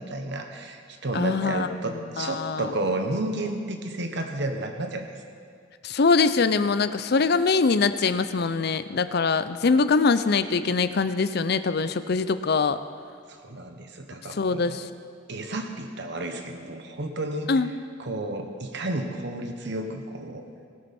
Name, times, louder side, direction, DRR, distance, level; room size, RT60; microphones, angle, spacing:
voice 1, 0.0-5.1 13.3-14.8 15.3-17.5 18.0-20.4, right 2 dB, 60° right, 5 dB, 1.2 m, -32 dB
voice 2, 1.1-1.7 2.2-2.7 5.8-12.8 14.3-14.8 17.5-17.7, left 4 dB, 55° left, 12 dB, 0.5 m, -23 dB
17.5 x 12.5 x 4.4 m, 2.2 s
head